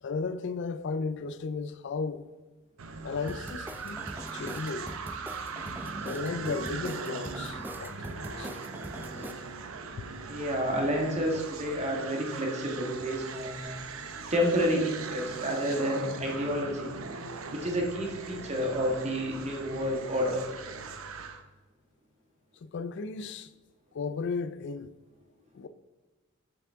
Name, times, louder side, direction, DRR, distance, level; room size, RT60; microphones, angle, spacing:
voice 1, 0.0-2.3 3.0-4.0 4.3-5.0 6.1-8.6 10.0-10.1 17.6-17.8 22.6-23.5 23.9-24.9 25.5-25.7, left 4 dB, 60° left, 0.4 m, -35 dB
sound 1, 2.8-21.4, right 4 dB, 80° right, 0.7 m, -40 dB
sound 2, 3.3-9.3, right 1 dB, 10° right, 0.4 m, -42 dB
voice 2, 10.3-13.8 14.3-16.9 17.5-20.4, equal, 35° right, 1.5 m, -29 dB
7.1 x 6.9 x 3.5 m
head